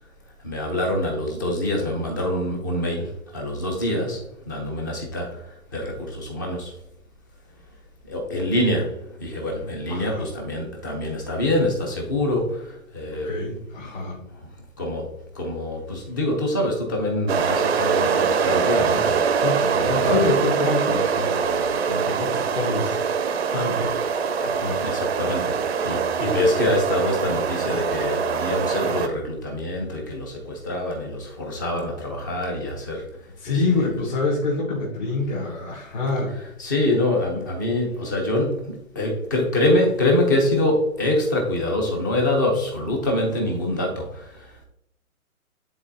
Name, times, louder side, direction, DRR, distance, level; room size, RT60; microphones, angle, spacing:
voice 1, 0.4-3.1 3.3-4.2 4.5-5.3 5.7-6.7 8.1-12.6 12.9-13.3 14.8-15.1 15.4-19.2 19.7-20.2 24.8-25.5 25.8-33.0 36.6-44.0, left 1 dB, 15° left, 1 dB, 0.6 m, -25 dB
voice 2, 9.8-10.2 12.1-12.3 13.1-14.2 19.4-23.0 23.5-23.9 24.4-24.8 33.4-36.3, left 3 dB, 30° left, -4 dB, 1.5 m, -26 dB
sound 1, 17.3-29.1, right 6 dB, 45° right, 0.6 m, -23 dB
10.0 x 3.9 x 2.7 m, 0.77 s
hypercardioid pair, 160°, 43 cm